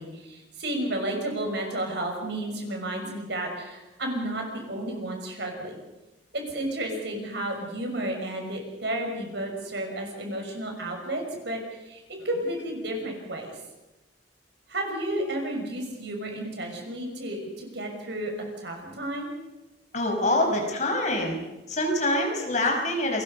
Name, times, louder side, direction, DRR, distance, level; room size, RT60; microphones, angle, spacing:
voice 1, 0.0-5.8 6.3-13.5 14.7-18.3 18.6-19.3, right 1 dB, 60° right, 2 dB, 6.1 m, -32 dB
voice 2, 19.9-21.4 21.7-23.2, left 1 dB, 40° left, 1 dB, 5.6 m, -25 dB
28.5 x 22.0 x 5.4 m, 1.0 s
head